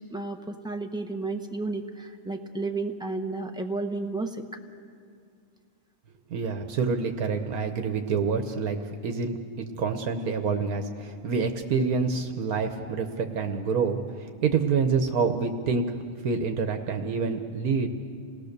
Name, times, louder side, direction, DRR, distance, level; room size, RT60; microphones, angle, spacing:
voice 1, 0.1-4.4, right 3 dB, 5° right, 4 dB, 1.0 m, -32 dB
voice 2, 6.3-8.8 9.0-15.9 16.2-17.9, right 5 dB, 75° right, 6 dB, 1.5 m, -27 dB
28.5 x 19.0 x 6.7 m, 2.2 s
omnidirectional pair, 1.6 m